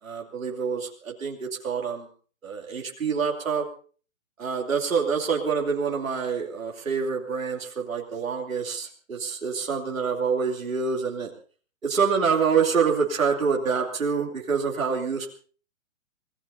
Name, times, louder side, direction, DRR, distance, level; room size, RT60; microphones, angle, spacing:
voice 1, 0.0-2.1 2.4-3.7 4.4-11.3 11.8-15.3, right 5 dB, 85° right, 0 dB, 3.0 m, -26 dB
27.5 x 18.5 x 2.7 m, 0.42 s
hypercardioid pair, 140°, 39 cm